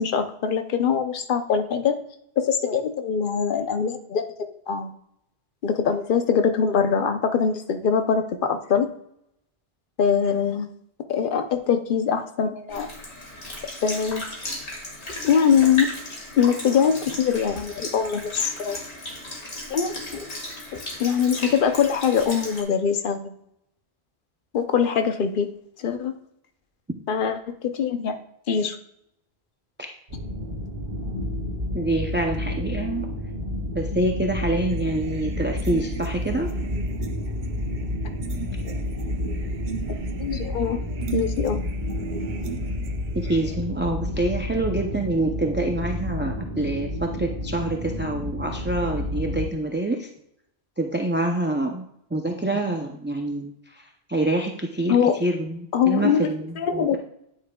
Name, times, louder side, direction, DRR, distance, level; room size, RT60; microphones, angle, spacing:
voice 1, 0.0-1.9 2.4-4.2 4.7-4.9 5.6-8.9 10.0-10.7 11.1-12.9 13.8-14.2 15.2-15.9 16.4-18.8 19.7-20.3 20.7-23.3 24.5-25.5 25.8-26.1 27.1-28.2 28.5-28.8 40.2-40.8 41.1-41.6 54.9-55.1 55.7-56.3 56.6-57.0, left 7 dB, 55° left, 7 dB, 0.8 m, -23 dB
Sink (filling or washing) / Liquid, 12.7-22.6, left 1 dB, 90° left, 2.2 m, -35 dB
sound 1, 30.1-49.5, left 1 dB, 70° right, 2.6 m, -30 dB
voice 2, 31.7-33.1 33.7-36.5 43.1-50.1 50.8-51.8 52.1-53.5 54.1-55.0 55.2-57.0, right 2 dB, 15° right, 2 dB, 0.4 m, -26 dB
sound 2, 34.7-43.6, right 6 dB, 55° right, 0.8 m, -38 dB
9.3 x 8.5 x 2.3 m, 0.77 s
omnidirectional pair, 1.1 m